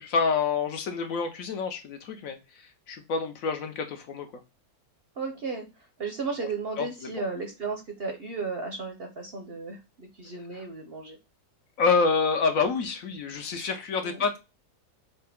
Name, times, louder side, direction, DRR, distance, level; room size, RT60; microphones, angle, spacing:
voice 1, 0.0-2.4 2.9-4.3 6.8-6.9 7.2-7.3 11.8-14.4, left 4 dB, 65° left, 6 dB, 1.0 m, -27 dB
voice 2, 5.2-11.2 14.0-14.2, right 4 dB, 50° right, 3 dB, 0.7 m, -35 dB
4.1 x 2.8 x 3.5 m, 0.27 s
omnidirectional pair, 1.7 m